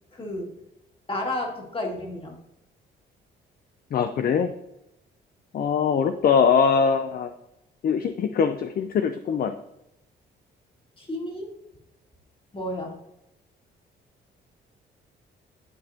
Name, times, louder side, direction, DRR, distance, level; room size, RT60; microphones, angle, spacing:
voice 1, 0.1-0.5 1.1-2.4 11.0-11.5 12.5-13.0, left 1 dB, 25° left, 0 dB, 2.1 m, -31 dB
voice 2, 3.9-4.5 5.5-7.3 7.8-9.5, left 6 dB, 50° left, 8 dB, 0.5 m, -22 dB
10.5 x 4.1 x 2.8 m, 0.86 s
cardioid pair, 90°, 20 cm